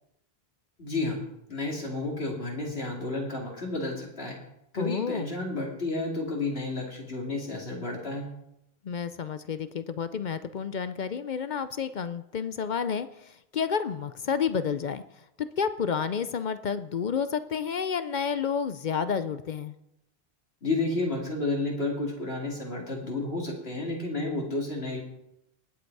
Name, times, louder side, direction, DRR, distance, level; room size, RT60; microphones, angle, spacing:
voice 1, 0.8-1.2 1.5-4.4 4.7-8.3 20.6-25.0, left 2 dB, 75° left, -1 dB, 2.8 m, -31 dB
voice 2, 4.8-5.3 8.8-19.8, left 6 dB, 55° left, 12 dB, 0.6 m, -30 dB
19.0 x 7.9 x 4.7 m, 0.83 s
omnidirectional pair, 1.1 m